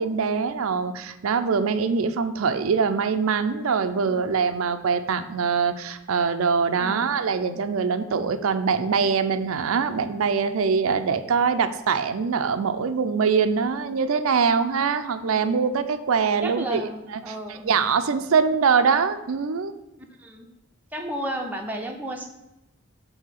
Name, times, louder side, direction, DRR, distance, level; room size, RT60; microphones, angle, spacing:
voice 1, 0.0-16.8 17.5-19.7, right 5 dB, 90° right, 9 dB, 0.5 m, -23 dB
voice 2, 6.7-7.1 16.4-17.6 20.2-20.5 20.9-22.3, right 1 dB, 10° right, 1 dB, 0.7 m, -33 dB
7.4 x 2.8 x 5.7 m, 0.94 s
head